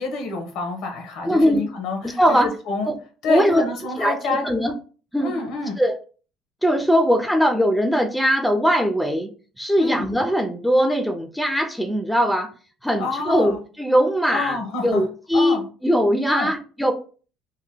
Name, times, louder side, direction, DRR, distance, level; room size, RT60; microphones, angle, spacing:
voice 1, 0.0-2.9 3.2-4.4 5.2-5.8 9.8-10.1 13.0-13.6 14.3-15.0 15.3-15.7 16.3-16.5, left 3 dB, 75° left, 4 dB, 0.8 m, -27 dB
voice 2, 1.3-1.7 2.0-2.5 2.9-3.0 3.3-3.6 4.0-4.7 5.1-5.3 5.8-6.0 6.6-9.3 9.6-12.5 12.8-14.6 14.8-16.9, equal, ahead, 6 dB, 0.3 m, -20 dB
2.8 x 2.1 x 3.4 m, 0.38 s
cardioid pair, 135°, 0 cm